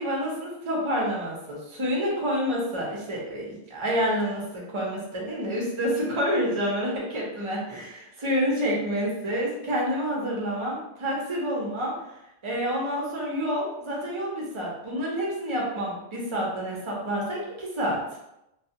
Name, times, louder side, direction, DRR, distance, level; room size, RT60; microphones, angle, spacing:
voice 1, 0.0-11.9 12.4-18.0, equal, 30° right, -3 dB, 0.7 m, -28 dB
2.3 x 2.3 x 2.7 m, 0.87 s
omnidirectional pair, 1.1 m